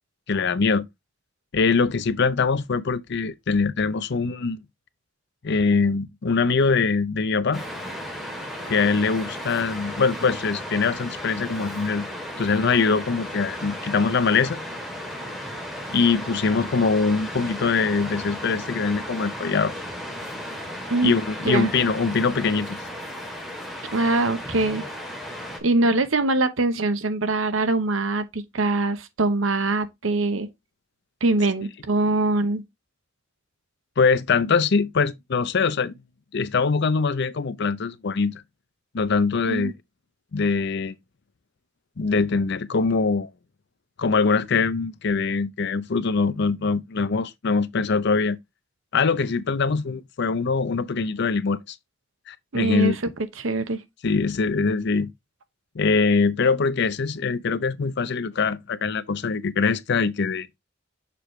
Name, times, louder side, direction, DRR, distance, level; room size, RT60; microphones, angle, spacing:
voice 1, 0.3-0.9 1.5-4.6 5.4-7.6 8.7-12.1 12.4-14.6 15.9-19.7 21.0-22.8 34.0-35.9 36.3-38.4 38.9-39.7 40.3-40.9 42.0-43.3 44.0-48.4 48.9-51.8 52.3-53.0 54.0-55.1 55.7-60.5, left 4 dB, 60° left, 0.6 m, -23 dB
Waves surf, 7.5-25.6, equal, ahead, 2.2 m, -35 dB
voice 2, 23.9-24.8 25.6-30.5 31.2-32.6 39.5-39.7 52.5-52.9 53.4-53.8, right 2 dB, 75° right, 1.0 m, -23 dB
6.9 x 4.7 x 3.2 m
head